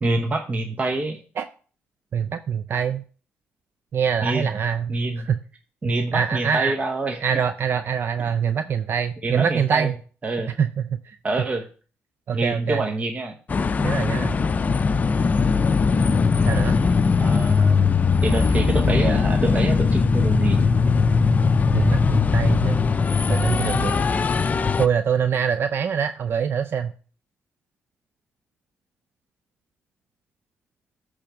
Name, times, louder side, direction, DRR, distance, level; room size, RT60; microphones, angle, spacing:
voice 1, 0.0-1.2 4.2-4.5 4.9-5.3 5.8-7.2 9.2-9.9 10.2-10.5 11.2-11.6 12.3-13.4 17.2-17.9 18.2-20.6, right 2 dB, 30° right, 3 dB, 0.9 m, -26 dB
voice 2, 2.1-3.0 3.9-5.4 6.1-6.8 7.2-9.9 10.6-11.2 12.3-12.9 13.8-14.4 16.4-16.7 21.7-22.8 23.3-24.0 24.8-26.9, right 7 dB, 55° right, 10 dB, 0.4 m, -24 dB
sound 1, 13.5-24.9, left 5 dB, 35° left, 0.5 m, -20 dB
8.5 x 3.4 x 5.9 m, 0.40 s
cardioid pair, 85°, 5 cm